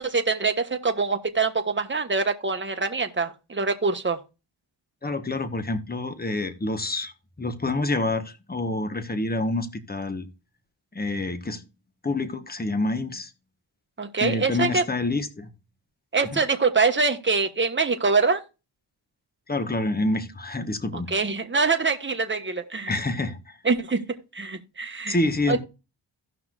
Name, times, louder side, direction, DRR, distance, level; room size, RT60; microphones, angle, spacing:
voice 1, 0.0-4.2 14.0-14.8 16.1-18.4 21.1-22.9 23.6-24.0 24.3-25.1 25.5-25.6, right 4 dB, 25° right, 1.4 m, -24 dB
voice 2, 5.0-7.1 7.4-10.3 10.9-11.6 12.0-13.3 14.2-15.5 16.3-16.4 19.5-21.1 22.9-23.6 25.1-25.6, left 2 dB, 20° left, 1.3 m, -27 dB
16.5 x 5.8 x 2.5 m
cardioid pair, 70°, 48 cm